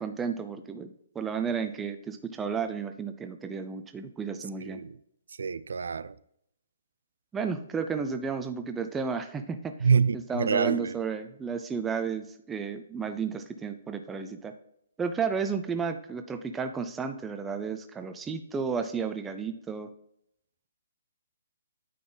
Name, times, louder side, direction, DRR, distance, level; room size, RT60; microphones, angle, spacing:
voice 1, 0.0-4.8 7.3-9.7 10.3-14.5 15.0-19.9, right 5 dB, 10° right, 0.4 m, -32 dB
voice 2, 4.6-5.0 5.4-6.1 9.8-10.9, right 6 dB, 80° right, 0.4 m, -26 dB
9.3 x 3.9 x 3.9 m
hypercardioid pair, 170°, 0 cm